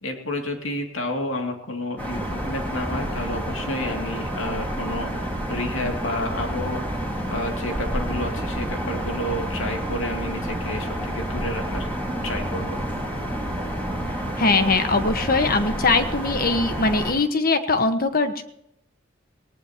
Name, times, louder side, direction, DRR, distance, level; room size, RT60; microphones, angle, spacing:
voice 1, 0.0-6.8 7.3-11.9 12.2-12.8, left 1 dB, 85° left, 3 dB, 2.5 m, -30 dB
sound 1, 2.0-17.1, equal, 10° left, 4.5 m, -29 dB
voice 2, 14.4-18.4, left 3 dB, 50° left, 8 dB, 1.3 m, -21 dB
19.0 x 18.5 x 2.9 m, 0.76 s
head